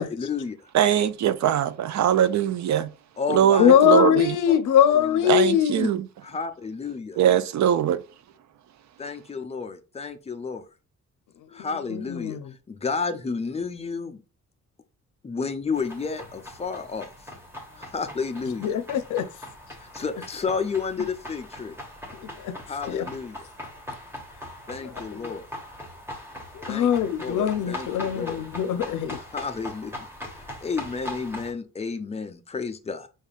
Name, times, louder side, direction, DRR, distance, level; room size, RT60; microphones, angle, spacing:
voice 1, 0.0-0.6 3.2-3.8 4.9-5.3 6.2-7.2 9.0-10.6 11.5-12.4 12.7-14.2 15.2-17.1 17.8-18.8 19.8-21.8 22.7-23.5 24.7-25.5 26.7-26.9 27.2-28.5 29.3-29.9 30.6-33.1, left 5 dB, 20° left, 0.5 m, -31 dB
voice 2, 0.7-2.9 3.3-4.4 5.3-6.1 7.2-8.0, right 10 dB, 65° right, 0.5 m, -21 dB
voice 3, 3.6-5.9 11.9-12.4 18.6-19.3 22.2-22.5 22.9-23.1 24.8-24.9 25.2-25.3 26.5-29.2, left 9 dB, 75° left, 0.6 m, -22 dB
sound 1, 15.7-31.5, left 1 dB, 10° right, 1.3 m, -41 dB
5.5 x 3.6 x 2.4 m
wide cardioid pair, 175°, 31 cm